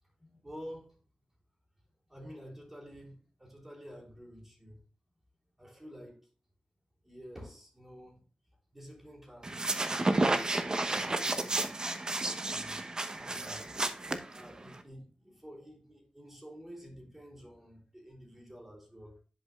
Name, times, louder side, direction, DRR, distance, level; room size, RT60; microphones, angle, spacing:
voice 1, 0.2-1.0 2.1-4.8 5.6-6.3 7.0-8.2 8.7-9.6 10.1-11.8 12.4-13.9 14.3-19.2, equal, 15° right, 3.5 m, -50 dB
sound 1, 9.4-14.8, right 2 dB, 35° right, 1.0 m, -31 dB
10.5 x 5.2 x 2.4 m
cardioid pair, 60°, 2 cm